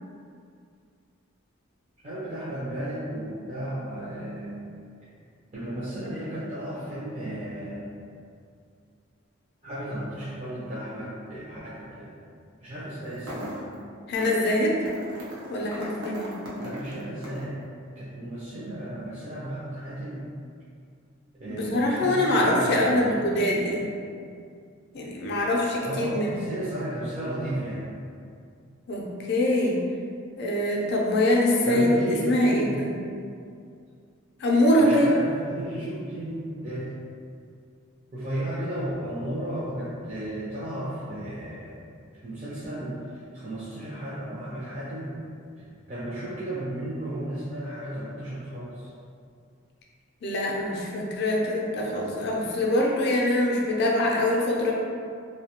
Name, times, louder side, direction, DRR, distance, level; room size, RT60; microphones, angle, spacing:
voice 1, 2.0-4.7 5.5-8.0 9.6-12.2 12.6-13.7 16.6-17.6 18.0-20.2 21.4-23.2 25.8-28.0 31.6-32.8 34.8-36.9 38.1-41.8 42.2-43.0 43.3-45.2 45.6-48.9, right 1 dB, 35° right, -9 dB, 0.4 m, -34 dB
sound 1, 13.0-13.7 14.2-14.5 14.9-17.5, equal, 90° right, 0.6 m, -38 dB
voice 2, 14.1-14.8 15.5-16.3 21.5-23.9 24.9-26.4 28.9-29.0 29.3-29.8 30.4-31.9 32.2-32.9 34.4-35.1 50.2-54.7, left 1 dB, 50° left, -2 dB, 0.4 m, -23 dB
2.6 x 2.1 x 2.9 m, 2.3 s
head